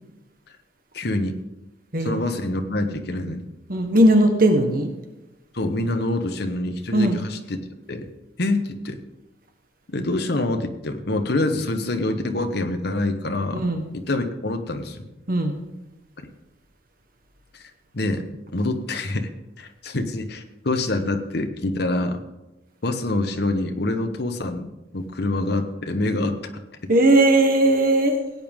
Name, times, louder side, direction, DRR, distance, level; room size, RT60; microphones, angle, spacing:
voice 1, 0.9-1.4 2.0-3.4 5.5-8.1 8.4-9.0 9.9-13.6 13.9-15.1 16.2-16.3 17.5-17.6 17.9-18.2 18.5-19.3 19.6-22.2 22.8-26.4, left 2 dB, 60° left, 6 dB, 1.1 m, -26 dB
voice 2, 3.7-4.9 6.9-7.2 13.5-13.8 15.3-15.6 26.9-28.2, right 1 dB, 50° right, 5 dB, 1.4 m, -18 dB
17.0 x 9.0 x 3.7 m, 1.1 s
head